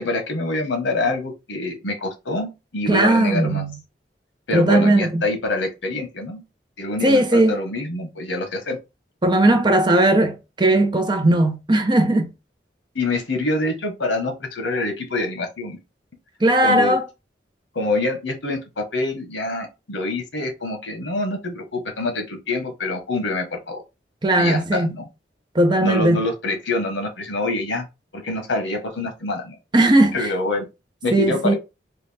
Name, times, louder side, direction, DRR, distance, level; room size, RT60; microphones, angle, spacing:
voice 1, 0.0-3.6 4.5-6.4 6.8-8.8 12.9-15.8 16.6-17.0 17.7-23.8 24.4-25.0 25.8-27.9 28.1-29.5 30.1-30.7 31.0-31.6, left 2 dB, 90° left, 1.1 m, -26 dB
voice 2, 2.9-3.8 4.5-5.2 7.0-7.5 9.2-12.3 16.4-17.1 24.2-24.9 25.5-26.2 29.7-30.3 31.1-31.5, right 1 dB, 25° right, 0.6 m, -17 dB
4.0 x 2.3 x 3.3 m
head